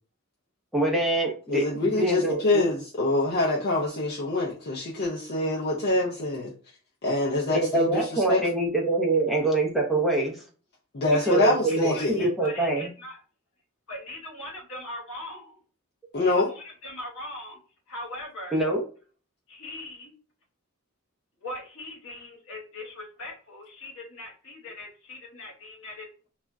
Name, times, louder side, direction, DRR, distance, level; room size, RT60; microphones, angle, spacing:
voice 1, 0.7-2.4 7.5-10.4 11.3-12.9 18.5-18.8, right 2 dB, ahead, 0.5 m, -25 dB
voice 2, 1.5-6.5 7.0-8.5 10.9-12.3 16.1-16.5, left 2 dB, 50° left, 0.5 m, -25 dB
voice 3, 11.2-13.2 13.9-15.6 16.2-17.6 17.9-18.6 19.5-20.1 21.4-26.1, left 1 dB, 80° left, 1.0 m, -40 dB
2.3 x 2.1 x 3.4 m
head